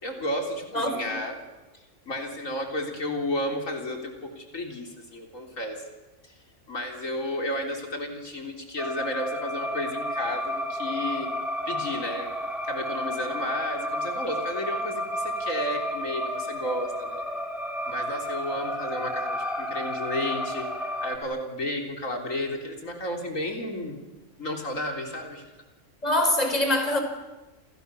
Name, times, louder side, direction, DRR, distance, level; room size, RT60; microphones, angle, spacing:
voice 1, 0.0-1.4 2.1-5.8 6.7-11.3 11.7-12.3 12.7-17.2 17.9-20.7 21.0-24.0 24.4-25.4, left 1 dB, 85° left, 3 dB, 4.1 m, -32 dB
voice 2, 0.7-1.2 26.0-27.0, left 1 dB, 30° left, 5 dB, 4.5 m, -24 dB
sound 1, 8.8-21.2, equal, ahead, 3.6 m, -32 dB
28.5 x 28.0 x 7.0 m, 1.1 s
omnidirectional pair, 1.3 m